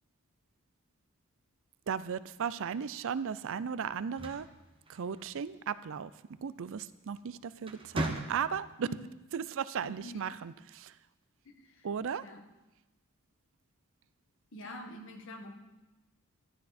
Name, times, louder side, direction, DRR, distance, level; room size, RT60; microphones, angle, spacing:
voice 1, 1.9-4.5 4.9-6.1 6.4-8.9 9.3-10.9 11.8-12.2, right 7 dB, 65° right, 16 dB, 0.4 m, -36 dB
sound 1, 3.9-5.5 6.9-7.2 7.6-8.8, right 1 dB, 25° right, 1.0 m, -38 dB
voice 2, 9.8-10.4 11.4-11.9 12.2-12.4 14.5-15.5, left 1 dB, 65° left, 3 dB, 1.6 m, -46 dB
12.0 x 11.5 x 4.3 m, 1.0 s
head